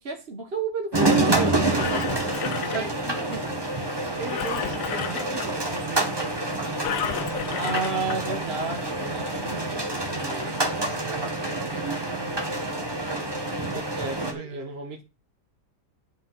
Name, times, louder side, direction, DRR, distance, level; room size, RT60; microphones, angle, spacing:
voice 1, 0.0-2.0 2.6-3.5 7.6-10.4 13.7-15.0, right 3 dB, 40° right, 1.5 m, -32 dB
sound 1, 0.9-14.3, right 2 dB, 15° right, 1.8 m, -27 dB
Engine, 1.4-3.4 4.2-5.5 6.8-8.2 8.8-8.9, left 8 dB, 75° left, 1.5 m, -32 dB
voice 2, 2.5-2.9 4.2-6.9 9.5-9.9 10.3-12.8 14.2-14.7, right 5 dB, 60° right, 1.9 m, -40 dB
8.9 x 5.6 x 6.2 m
omnidirectional pair, 1.8 m